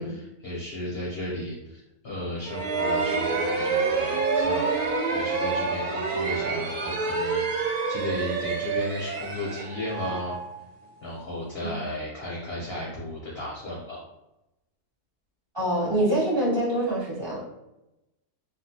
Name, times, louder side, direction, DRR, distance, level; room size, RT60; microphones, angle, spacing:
voice 1, 0.0-4.8 5.1-10.4 11.0-14.0, left 1 dB, 60° left, -5 dB, 0.6 m, -34 dB
sound 1, 2.4-11.1, right 4 dB, 85° right, 1.1 m, -27 dB
voice 2, 15.5-17.4, right 1 dB, 30° right, -8 dB, 0.5 m, -25 dB
2.6 x 2.3 x 2.7 m, 0.93 s
omnidirectional pair, 1.6 m